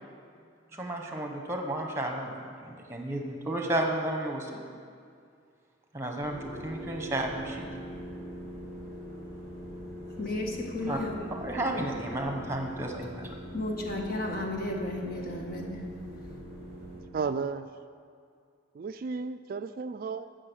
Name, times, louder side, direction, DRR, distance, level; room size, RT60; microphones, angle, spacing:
voice 1, 0.7-4.6 5.9-7.7 10.9-11.0 11.3-13.3, right 1 dB, 15° right, 2 dB, 1.3 m, -32 dB
sound 1, 6.2-17.0, equal, 20° left, 3.5 m, -42 dB
voice 2, 10.2-11.2 13.5-16.4, left 1 dB, 50° left, 1 dB, 1.7 m, -34 dB
voice 3, 17.1-17.7 18.7-20.3, right 5 dB, 50° right, 10 dB, 0.3 m, -33 dB
15.0 x 6.4 x 6.4 m, 2.3 s
head